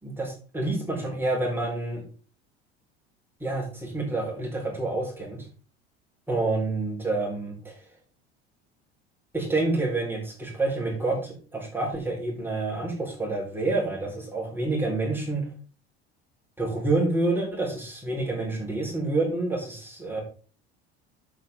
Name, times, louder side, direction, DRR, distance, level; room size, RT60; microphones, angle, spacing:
voice 1, 0.0-2.0 3.4-5.5 6.3-7.8 9.3-15.4 16.6-20.2, right 2 dB, 5° right, -2 dB, 4.4 m, -28 dB
11.5 x 7.5 x 3.6 m, 0.38 s
figure-of-eight pair, 65°, 31 cm